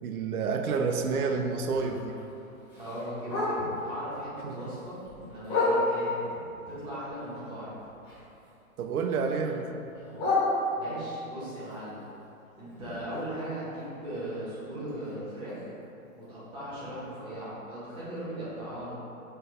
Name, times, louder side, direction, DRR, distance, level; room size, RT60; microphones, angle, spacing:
voice 1, 0.0-2.2 4.4-4.6 8.8-9.7, right 5 dB, 85° right, 5 dB, 0.6 m, -29 dB
Bark, 0.7-3.9 4.3-6.2 6.7-8.5 8.8-11.1 11.6-15.5 15.8-15.9 16.2-16.6 17.0-17.1 17.5-17.6 18.1-18.2, left 2 dB, 20° left, 1.0 m, -33 dB
voice 2, 2.7-6.4 6.7-7.7 10.7-12.0 12.6-15.7 16.2-18.9, right 1 dB, 10° right, -11 dB, 1.2 m, -38 dB
4.5 x 2.6 x 3.9 m, 2.7 s
hypercardioid pair, 145°, 43 cm